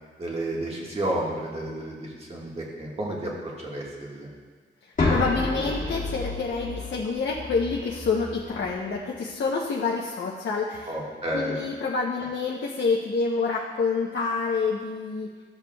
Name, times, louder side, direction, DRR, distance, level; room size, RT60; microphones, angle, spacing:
voice 1, 0.2-4.3 10.9-11.6, right 1 dB, 30° right, -4 dB, 1.6 m, -31 dB
sound 1, 5.0-8.9, left 2 dB, 40° left, 1.8 m, -30 dB
voice 2, 5.1-11.0 11.3-15.3, left 4 dB, 65° left, -3 dB, 0.8 m, -27 dB
13.5 x 7.1 x 2.3 m, 1.5 s
wide cardioid pair, 175°, 20 cm